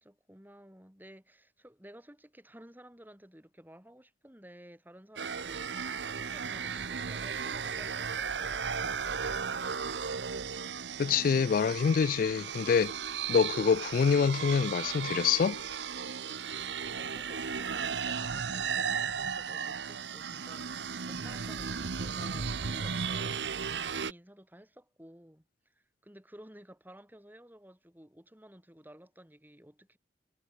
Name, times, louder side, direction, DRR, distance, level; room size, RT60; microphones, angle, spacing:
voice 1, 0.0-9.2 17.0-23.6 24.0-30.0, equal, 10° right, 3.5 m, -54 dB
sound 1, 5.2-24.1, right 6 dB, 85° right, 0.9 m, -35 dB
voice 2, 11.0-12.9 13.3-15.6, left 6 dB, 50° left, 0.3 m, -26 dB
head